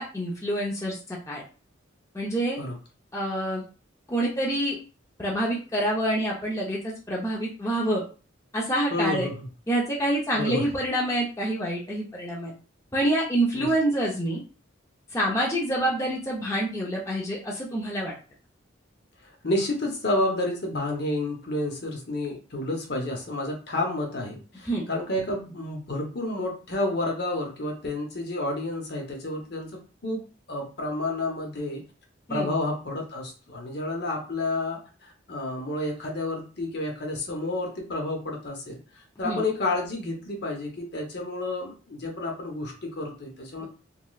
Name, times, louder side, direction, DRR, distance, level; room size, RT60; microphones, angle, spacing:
voice 1, 0.0-1.4 2.1-2.6 3.1-3.6 4.1-4.8 5.2-8.0 8.5-9.3 9.7-12.5 12.9-14.4 15.1-18.1 24.6-24.8 32.3-32.5 39.2-39.4, right 1 dB, 15° left, -4 dB, 0.6 m, -27 dB
voice 2, 8.9-9.5 10.3-10.6 13.5-13.7 19.4-29.7 30.0-30.2 30.5-31.8 32.3-38.8 39.2-43.6, left 2 dB, 55° left, 1 dB, 0.8 m, -30 dB
3.2 x 2.8 x 2.3 m, 0.36 s
head